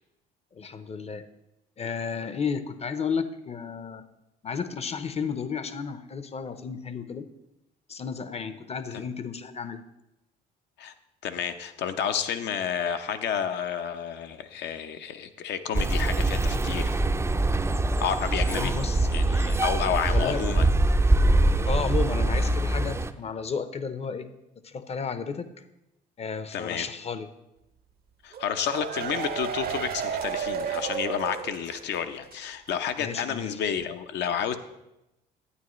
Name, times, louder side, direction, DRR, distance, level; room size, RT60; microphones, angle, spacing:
voice 1, 0.5-1.3 1.8-4.0 4.4-7.3 7.9-9.8 18.5-19.1 20.1-20.4 21.7-24.3 24.6-25.5 26.2-27.3 33.0-33.5, left 5 dB, 35° left, 12 dB, 0.7 m, -32 dB
voice 2, 11.2-17.0 18.0-18.7 19.1-20.7 26.5-26.9 28.2-34.6, left 8 dB, 65° left, 8 dB, 0.8 m, -30 dB
sound 1, 15.7-23.1, right 2 dB, 15° right, 0.5 m, -23 dB
sound 2, 28.3-32.0 32.3-32.4 32.7-32.8, right 7 dB, 50° right, 0.7 m, -32 dB
11.0 x 9.0 x 3.1 m, 0.91 s
supercardioid pair, 70°, 20 cm